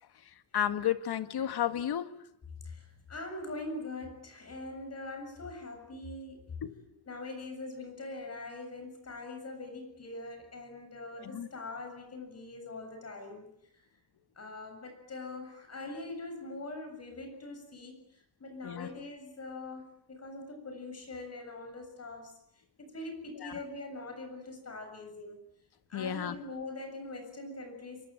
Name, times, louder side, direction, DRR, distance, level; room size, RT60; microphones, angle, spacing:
voice 1, 0.5-2.1 6.6-6.7 11.2-11.5 18.6-18.9 23.4-23.5 25.9-26.4, left 10 dB, 70° left, 10 dB, 2.0 m, -32 dB
voice 2, 2.7-6.5 6.9-13.5 13.7-13.8 14.4-18.0 18.4-22.4 22.8-25.4 25.9-28.1, left 2 dB, 40° left, 6 dB, 7.3 m, -43 dB
25.0 x 22.5 x 9.0 m, 0.71 s
wide cardioid pair, 140°, 40 cm